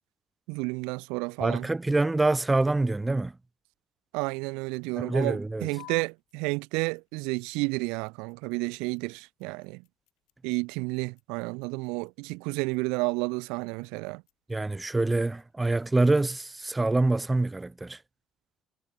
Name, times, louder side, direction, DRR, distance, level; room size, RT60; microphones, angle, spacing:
voice 1, 0.5-1.7 4.1-9.8 10.4-14.2, right 28 dB, 75° right, 0.9 m, -31 dB
voice 2, 1.4-3.4 5.0-5.7 14.5-18.0, right 2 dB, 15° right, 2.1 m, -25 dB
sound 1, 5.8-17.8, left 29 dB, 75° left, 4.3 m, -57 dB
hypercardioid pair, 60°, 0 cm